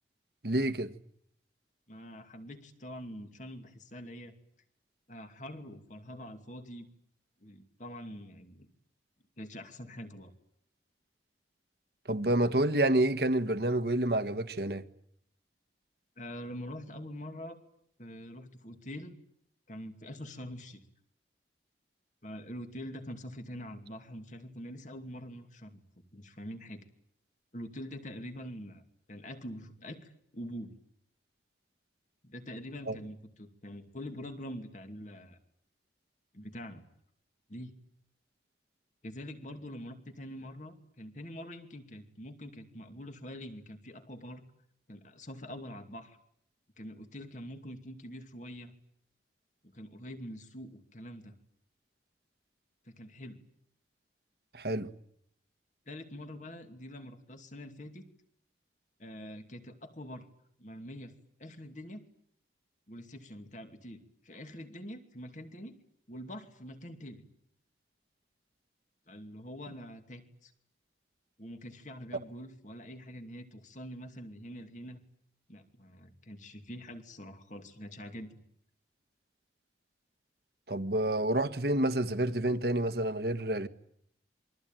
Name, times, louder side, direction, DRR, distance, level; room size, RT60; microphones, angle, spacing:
voice 1, 0.4-0.9 12.1-14.8 32.9-33.0 54.5-54.9 80.7-83.7, right 1 dB, 60° right, 1.4 m, -28 dB
voice 2, 1.9-4.3 5.1-6.9 7.4-8.7 9.4-10.3 16.2-17.6 18.0-19.2 19.7-20.8 22.2-25.8 26.1-26.8 27.5-28.8 29.1-30.7 32.2-35.4 36.3-36.8 37.5-37.7 39.0-44.4 44.9-46.2 46.8-48.7 49.6-51.3 52.9-53.4 55.9-58.0 59.0-60.3 60.6-61.1 61.4-62.0 62.9-65.8 66.1-67.2 69.1-70.5 71.4-75.0 75.5-78.4, equal, 45° left, 2.6 m, -45 dB
27.5 x 22.5 x 9.2 m
head